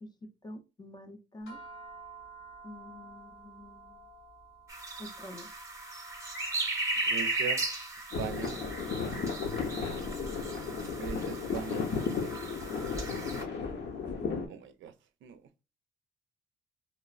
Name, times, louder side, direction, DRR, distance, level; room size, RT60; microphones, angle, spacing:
voice 1, 0.0-1.6 2.6-4.1 5.0-5.5, left 1 dB, 20° left, 0.5 m, -47 dB
sound 1, 1.5-11.9, right 3 dB, 75° left, 1.3 m, -53 dB
sound 2, 4.7-13.4, right 2 dB, 15° right, 0.8 m, -36 dB
voice 2, 7.1-7.6 8.2-8.6 11.0-11.9 14.5-14.9 15.2-15.4, right 7 dB, 75° right, 0.4 m, -39 dB
sound 3, 8.1-14.5, left 5 dB, 60° left, 0.8 m, -34 dB
3.1 x 2.0 x 2.3 m
cardioid pair, 90°, 20 cm